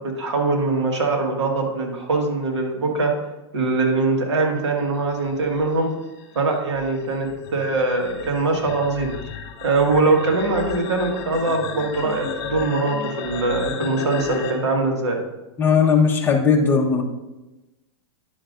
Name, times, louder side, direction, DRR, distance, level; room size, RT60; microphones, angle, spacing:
voice 1, 0.0-3.1 3.5-5.9 6.4-9.1 9.6-15.2, right 3 dB, 90° right, 1 dB, 1.8 m, -22 dB
sound 1, 5.2-14.5, left 7 dB, 45° left, 1.4 m, -34 dB
voice 2, 15.6-17.0, left 5 dB, 15° left, -2 dB, 1.1 m, -17 dB
10.5 x 6.5 x 2.6 m, 1.0 s
hypercardioid pair, 125°, 14 cm